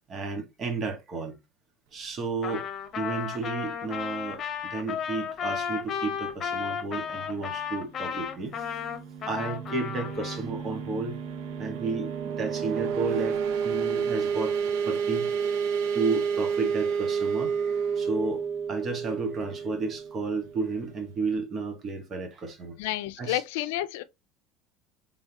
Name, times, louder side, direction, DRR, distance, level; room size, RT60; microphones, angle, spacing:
voice 1, 0.1-1.4 1.9-2.7 3.0-8.7 9.3-11.2 11.6-13.4 13.6-14.6 14.8-15.6 15.9-18.4 18.7-22.7 23.2-23.4, right 3 dB, 40° right, 1.6 m, -32 dB
Trumpet, 2.4-10.4, left 7 dB, 40° left, 1.0 m, -34 dB
sound 1, 8.4-20.9, right 6 dB, 80° right, 0.8 m, -30 dB
voice 2, 22.8-24.0, left 14 dB, 85° left, 0.4 m, -30 dB
3.8 x 3.5 x 2.9 m
supercardioid pair, 105°, 0 cm